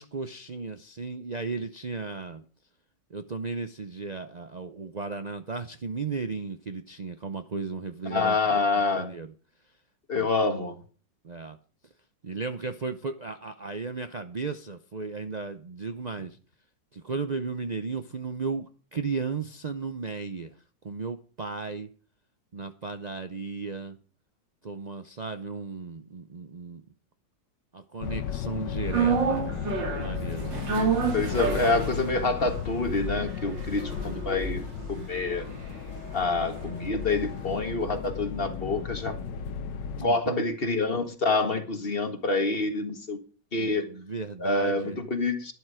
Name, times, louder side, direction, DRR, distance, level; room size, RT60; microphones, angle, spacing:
voice 1, 0.0-2.5 3.1-8.6 9.0-9.3 10.1-10.3 11.2-11.6 12.2-16.4 16.9-20.6 20.8-21.9 22.5-24.0 24.6-26.8 27.7-30.7 40.0-40.5 40.9-41.0 43.6-45.0, right 4 dB, 55° right, 0.4 m, -35 dB
voice 2, 8.1-9.1 10.1-10.8 30.7-35.4 36.1-39.2 40.0-43.2 43.5-43.9 44.4-45.5, left 3 dB, 30° left, 1.8 m, -27 dB
sound 1, 28.0-40.1, left 8 dB, 80° left, 1.6 m, -35 dB
sound 2, 28.9-37.2 37.5-37.6, right 6 dB, 85° right, 2.9 m, -31 dB
12.0 x 11.5 x 4.9 m
omnidirectional pair, 1.9 m